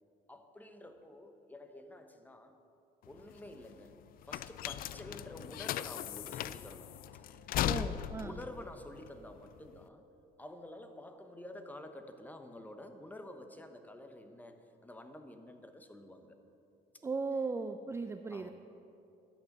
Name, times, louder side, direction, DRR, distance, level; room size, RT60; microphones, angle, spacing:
voice 1, 0.3-2.6 3.0-4.0 4.3-10.0 10.4-14.6 14.8-16.4 18.3-18.5, left 1 dB, 10° left, 7 dB, 0.9 m, -49 dB
sound 1, 3.0-9.8, left 12 dB, 60° left, 0.4 m, -38 dB
sound 2, 6.9-12.1, equal, 50° right, 3.2 m, -69 dB
voice 2, 7.6-8.4 17.0-18.5, right 4 dB, 15° right, 9 dB, 0.4 m, -37 dB
12.0 x 8.5 x 6.6 m, 2.7 s
cardioid pair, 110°, 17 cm